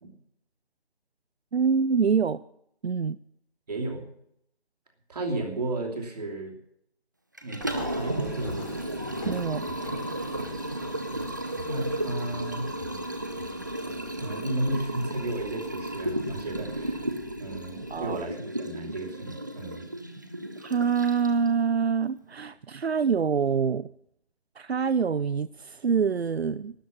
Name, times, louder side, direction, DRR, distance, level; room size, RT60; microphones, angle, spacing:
voice 1, 1.5-2.4 2.8-3.2 9.3-9.6 17.9-18.3 20.6-23.9 24.6-26.9, right 6 dB, 75° right, 16 dB, 0.6 m, -25 dB
voice 2, 3.7-4.1 5.1-6.5 7.4-8.7 11.6-12.7 14.2-17.1 17.4-19.9, right 2 dB, 40° right, 2 dB, 2.8 m, -33 dB
Liquid, 7.4-21.5, right 1 dB, 20° right, 0.6 m, -34 dB
sound 1, 7.6-18.3, left 3 dB, 40° left, 2.9 m, -44 dB
13.0 x 11.5 x 7.1 m, 0.73 s
figure-of-eight pair, 160°, 32 cm